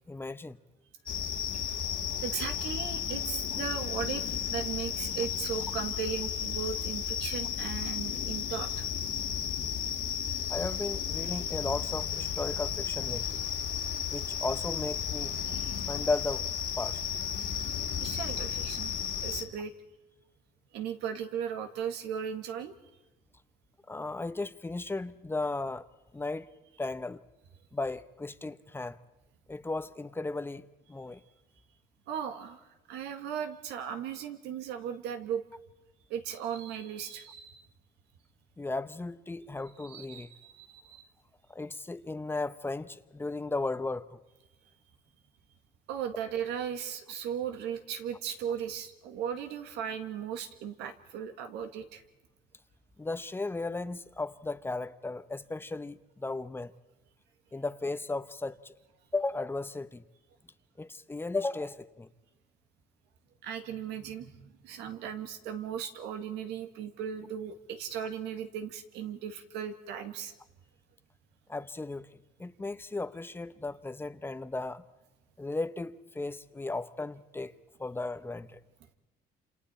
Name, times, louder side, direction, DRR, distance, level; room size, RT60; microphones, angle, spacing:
voice 1, 0.1-0.6 10.5-13.3 14.1-15.4 15.9-16.5 16.8-17.0 23.9-25.9 26.1-26.5 26.8-27.2 27.7-29.0 29.5-30.6 30.9-31.2 38.6-40.3 41.5-44.2 53.0-56.7 57.5-58.7 59.1-60.0 60.8-62.1 71.5-72.1 72.4-74.8 75.4-77.5 77.8-78.6, left 3 dB, 15° left, 0.8 m, -35 dB
sound 1, 1.1-19.4, left 8 dB, 60° left, 2.3 m, -33 dB
voice 2, 2.2-8.9 15.5-15.7 18.0-18.9 19.2-19.7 20.7-22.7 32.1-32.6 32.9-35.4 36.1-37.6 39.9-41.0 45.9-52.0 63.4-70.3, right 8 dB, 90° right, 1.9 m, -37 dB
28.5 x 27.5 x 4.4 m
cardioid pair, 110°, 17 cm